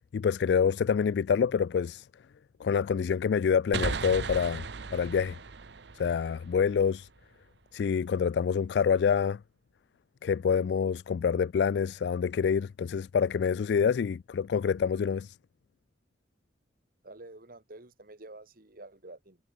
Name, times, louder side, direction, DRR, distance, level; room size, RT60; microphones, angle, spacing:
voice 1, 0.1-2.1 2.6-4.6 4.9-5.4 5.9-7.1 7.7-9.4 10.2-15.4, left 6 dB, 65° left, 0.3 m, -27 dB
sound 1, 3.7-7.2, right 4 dB, 70° right, 0.9 m, -37 dB
voice 2, 17.0-19.4, right 2 dB, 50° right, 2.1 m, -48 dB
head